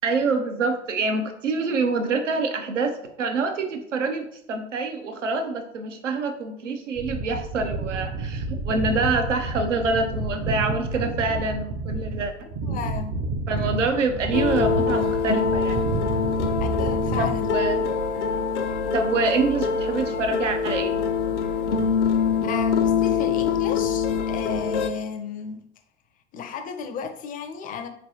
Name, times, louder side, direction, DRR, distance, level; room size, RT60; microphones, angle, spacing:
voice 1, 0.0-12.5 13.5-15.8 17.2-17.8 18.9-21.0, right 3 dB, 85° right, 6 dB, 0.7 m, -26 dB
sound 1, 7.0-18.1, right 2 dB, 45° right, 0.7 m, -30 dB
voice 2, 12.6-13.2 16.6-17.5 18.3-18.7 22.4-25.6 26.3-27.9, left 6 dB, 25° left, 8 dB, 0.4 m, -33 dB
sound 2, 14.3-24.9, left 6 dB, 75° left, 0.6 m, -24 dB
4.1 x 3.2 x 2.7 m, 0.71 s
figure-of-eight pair, 80°, 36 cm